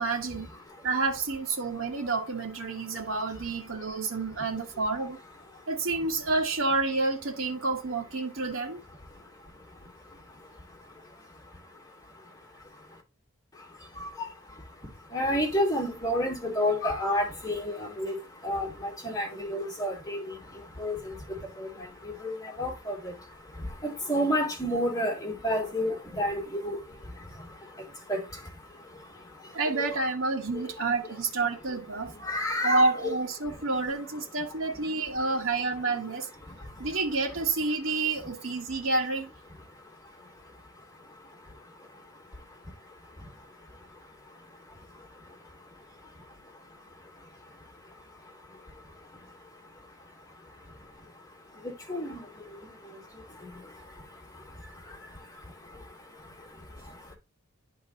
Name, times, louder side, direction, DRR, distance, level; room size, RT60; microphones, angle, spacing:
voice 1, 0.0-0.5 0.8-5.2 5.7-8.8 29.5-32.1 32.6-36.3 36.8-39.3, right 3 dB, 65° right, 1.3 m, -29 dB
voice 2, 2.8-3.4 3.7-5.1 5.5-5.7 9.0-13.0 13.5-29.9 30.5-30.7 32.0-33.1 33.4-33.7 34.8-34.9 35.2-35.3 36.1-36.9 38.2-38.3 39.7-57.1, equal, 15° left, 2.3 m, -35 dB
11.0 x 3.8 x 2.9 m
head